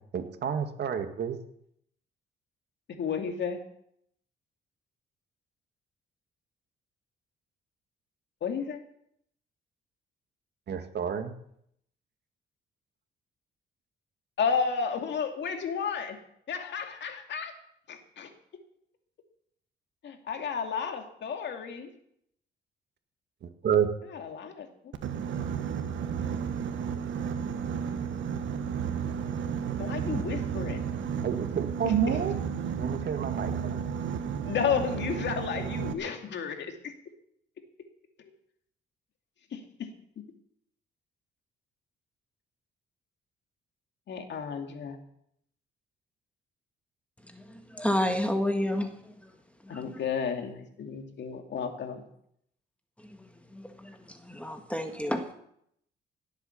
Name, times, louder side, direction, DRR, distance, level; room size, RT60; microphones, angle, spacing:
voice 1, 0.1-1.4 10.7-11.3 23.4-23.9 27.3-27.4 31.2-32.3 32.8-33.8, right 8 dB, 55° right, 7 dB, 1.9 m, -29 dB
voice 2, 3.0-3.6 8.4-8.8 14.4-16.2 16.5-17.5 17.9-18.3 20.0-21.9 24.1-24.7 29.8-30.8 31.8-32.2 34.4-36.9 38.2-38.3 39.5-39.9 44.1-45.0 49.7-52.0, left 6 dB, 65° left, 5 dB, 2.5 m, -32 dB
Boat Water vehicle, 24.9-35.9, right 7 dB, 70° right, 1.4 m, -32 dB
voice 3, 47.3-48.9 49.2-49.3 49.6-50.0 53.0-55.3, left 1 dB, 5° left, 5 dB, 1.7 m, -31 dB
17.5 x 8.2 x 7.1 m, 0.72 s
cardioid pair, 90°, 20 cm